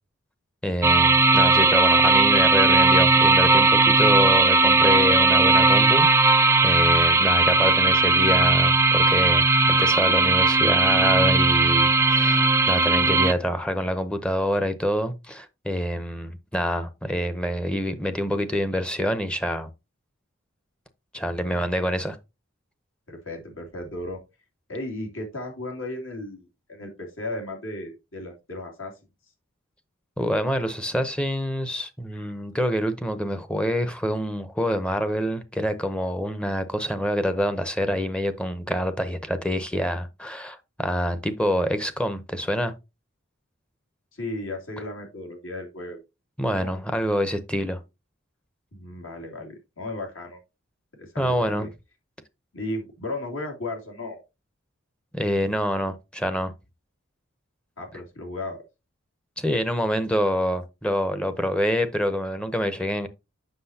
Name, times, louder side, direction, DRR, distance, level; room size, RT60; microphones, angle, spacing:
voice 1, 0.6-19.7 21.1-22.2 30.2-42.7 46.4-47.8 51.2-51.7 55.1-56.5 59.4-63.1, equal, 5° left, 0.7 m, -26 dB
sound 1, 0.8-13.3, right 3 dB, 15° right, 0.3 m, -18 dB
voice 2, 23.1-24.2 24.7-28.9 44.1-46.0 46.5-46.8 48.7-50.4 51.0-51.7 52.5-54.2 57.8-58.6, left 2 dB, 70° left, 2.7 m, -35 dB
7.7 x 6.2 x 2.8 m
head